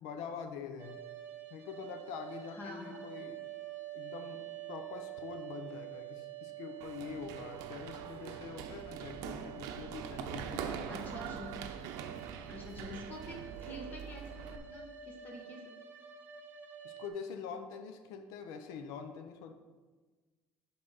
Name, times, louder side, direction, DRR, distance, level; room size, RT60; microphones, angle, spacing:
voice 1, 0.0-1.0 1.5-3.4 3.9-11.0 16.8-19.5, left 6 dB, 90° left, 7 dB, 0.6 m, -45 dB
sound 1, 0.8-17.1, right 12 dB, 35° right, 0.8 m, -48 dB
voice 2, 2.5-3.0 10.9-11.8 12.5-15.8, left 1 dB, 30° left, 0 dB, 1.7 m, -47 dB
Run, 6.8-14.6, right 7 dB, 80° right, 0.6 m, -43 dB
11.0 x 4.0 x 4.0 m, 1.3 s
cardioid pair, 140°, 6 cm